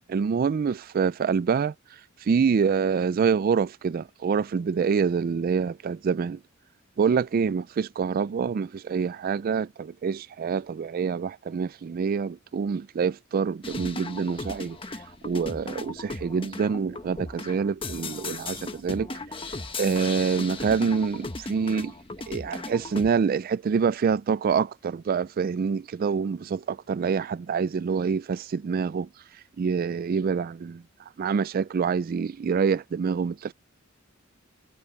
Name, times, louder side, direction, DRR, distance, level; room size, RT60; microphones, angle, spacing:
voice 1, 0.1-1.7 2.2-6.4 7.0-14.8 15.2-19.1 19.8-21.9 22.3-29.1 29.6-30.8 31.2-33.5, right 6 dB, 45° right, 0.3 m, -26 dB
sound 1, 13.6-23.1, left 3 dB, 25° left, 1.3 m, -37 dB
head